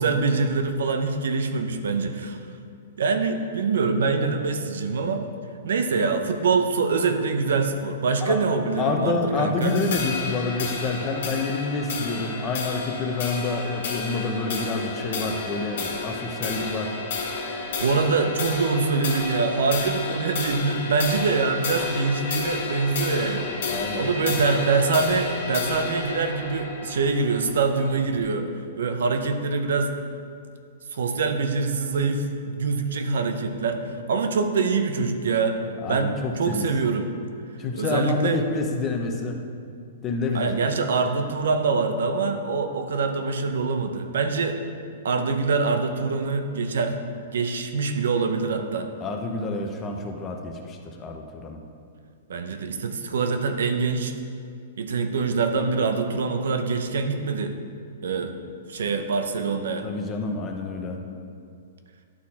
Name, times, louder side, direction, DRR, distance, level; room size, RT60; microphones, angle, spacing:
voice 1, 0.0-2.4 3.0-5.2 5.6-9.7 17.5-23.6 24.0-28.5 28.8-29.9 30.9-35.6 35.9-37.1 37.7-38.4 40.3-44.6 45.0-47.0 47.3-48.9 52.3-54.1 54.8-57.6 58.0-58.3 58.7-59.9, right 4 dB, 80° right, 6 dB, 0.7 m, -24 dB
voice 2, 8.8-17.0 23.7-24.1 35.8-36.7 37.6-39.4 40.0-40.5 49.0-51.6 59.8-61.0, left 3 dB, 20° left, 3 dB, 0.7 m, -28 dB
sound 1, 9.6-28.2, left 3 dB, 65° left, 1.6 m, -31 dB
11.5 x 4.3 x 4.2 m, 2.3 s
hypercardioid pair, 160°, 0 cm